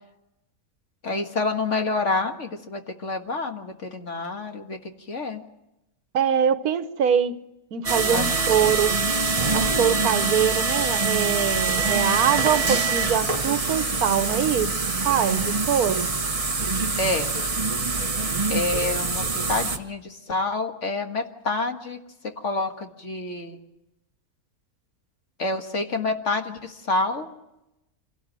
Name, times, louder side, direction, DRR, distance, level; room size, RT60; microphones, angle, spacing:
voice 1, 1.0-5.4 8.1-9.0 11.8-12.2 17.0-17.3 18.5-22.0 22.4-23.6 25.4-27.3, left 3 dB, 55° left, 2.0 m, -28 dB
voice 2, 6.1-7.4 7.7-8.9 9.5-14.7 15.0-16.1, right 8 dB, 80° right, 1.5 m, -23 dB
sound 1, 7.8-19.8, right 4 dB, 25° right, 1.1 m, -24 dB
26.0 x 17.5 x 7.6 m
omnidirectional pair, 1.5 m